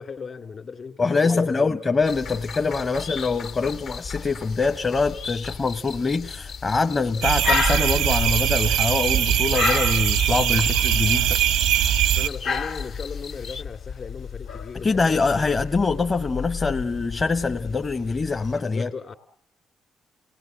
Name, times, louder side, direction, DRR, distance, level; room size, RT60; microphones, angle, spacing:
voice 1, 0.0-1.7 12.2-15.5 17.1-17.2 18.6-19.1, left 5 dB, 50° left, 2.2 m, -36 dB
voice 2, 1.0-11.4 14.8-18.9, left 4 dB, 35° left, 0.9 m, -24 dB
sound 1, 2.0-18.6, left 5 dB, 85° left, 2.4 m, -33 dB
sound 2, 2.0-13.6, left 6 dB, 65° left, 1.3 m, -40 dB
sound 3, 7.2-12.3, right 11 dB, 90° right, 0.9 m, -21 dB
29.5 x 18.0 x 7.8 m
supercardioid pair, 60°, 0 cm